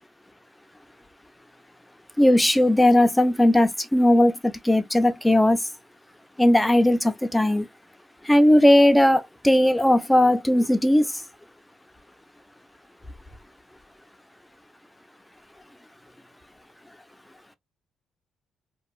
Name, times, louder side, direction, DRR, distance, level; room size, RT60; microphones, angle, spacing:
voice 1, 2.2-5.6 6.4-7.7 8.2-11.2, left 1 dB, 5° left, 0.5 m, -18 dB
2.9 x 2.2 x 2.4 m
cardioid pair, 90°, 0 cm